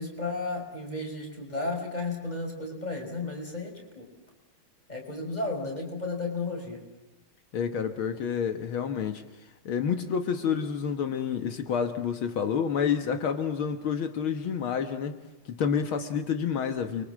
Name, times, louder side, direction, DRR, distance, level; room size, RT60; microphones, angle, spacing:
voice 1, 0.0-4.1 4.9-6.8, left 3 dB, 20° left, 2 dB, 6.3 m, -33 dB
voice 2, 7.5-9.2 9.7-15.2 15.5-17.0, left 7 dB, 80° left, 7 dB, 2.2 m, -29 dB
30.0 x 24.5 x 7.6 m, 1.1 s
omnidirectional pair, 2.3 m